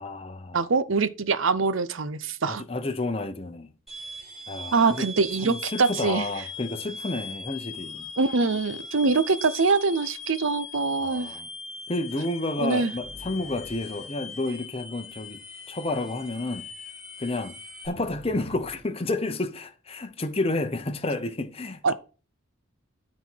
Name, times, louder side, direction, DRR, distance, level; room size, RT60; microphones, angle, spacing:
voice 1, 0.0-0.6 2.5-3.7 4.5-5.0 5.4-8.1 11.0-11.5 11.9-15.4 15.7-16.7 17.2-17.5 17.8-21.9, left 2 dB, 30° left, 0.8 m, -30 dB
voice 2, 0.5-2.6 4.7-6.3 8.2-11.3 12.6-12.9 21.8-21.9, right 4 dB, 65° right, 0.7 m, -24 dB
sound 1, 3.9-17.9, left 3 dB, ahead, 2.9 m, -40 dB
sound 2, 12.9-14.6 17.9-18.8, equal, 50° right, 2.1 m, -47 dB
13.0 x 4.3 x 4.6 m
head